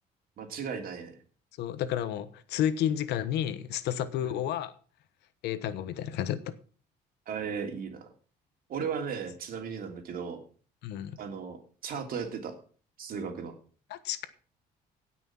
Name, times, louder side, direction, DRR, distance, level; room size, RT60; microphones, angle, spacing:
voice 1, 0.4-1.2 4.2-4.4 7.3-8.1 8.7-10.4 11.2-11.6 11.8-12.5 13.0-13.5, right 6 dB, 60° right, 5 dB, 2.9 m, -36 dB
voice 2, 1.6-4.7 5.4-6.5 10.8-11.2 13.9-14.2, left 10 dB, 85° left, 13 dB, 1.2 m, -31 dB
17.0 x 6.2 x 6.0 m, 0.41 s
cardioid pair, 110°, 17 cm